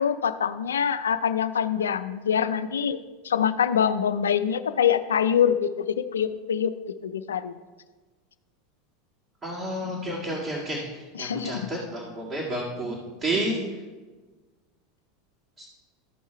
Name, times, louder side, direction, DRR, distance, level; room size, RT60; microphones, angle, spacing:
voice 1, 0.0-3.0 3.2-6.7 7.0-7.5 11.1-11.7, left 8 dB, 80° left, 12 dB, 0.4 m, -24 dB
voice 2, 9.4-10.8 11.2-13.0 13.2-13.6, right 1 dB, 30° right, -4 dB, 2.1 m, -30 dB
13.5 x 5.5 x 4.5 m, 1.3 s
hypercardioid pair, 85°, 0 cm